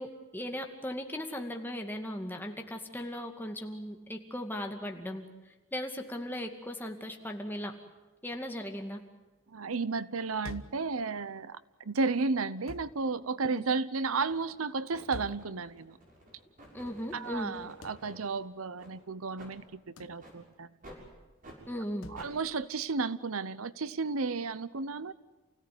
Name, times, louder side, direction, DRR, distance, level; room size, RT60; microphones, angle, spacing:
voice 1, 0.0-5.2 5.7-7.8 8.2-9.0 13.5-13.6 16.7-17.5 21.7-22.1, left 1 dB, 10° left, 3 dB, 2.3 m, -37 dB
voice 2, 9.5-16.0 17.1-20.7 22.1-25.1, right 4 dB, 85° right, 16 dB, 0.8 m, -33 dB
sound 1, 10.4-10.9 12.7-13.0 15.1-15.5 17.8-18.1 20.0-20.2 22.0-22.3, left 2 dB, 75° left, 1.2 m, -45 dB
sound 2, 13.4-13.6 14.2-14.6 14.9-18.3 18.8-18.9 19.3-19.5 20.2-20.4 20.8-21.0 21.4-21.6 22.1-22.3, equal, 40° right, 6.7 m, -52 dB
29.0 x 17.0 x 9.6 m, 1.2 s
head